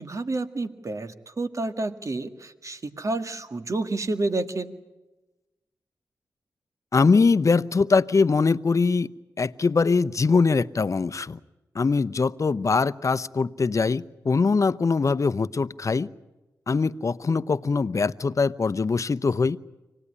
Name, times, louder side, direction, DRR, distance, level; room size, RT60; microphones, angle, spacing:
voice 1, 0.0-4.7, right 2 dB, 50° right, 9 dB, 1.8 m, -29 dB
voice 2, 6.9-9.1 9.4-11.4 11.7-16.1 16.7-19.6, left 4 dB, 50° left, 16 dB, 0.8 m, -22 dB
25.5 x 18.0 x 9.9 m, 1.1 s
cardioid pair, 45°, 7 cm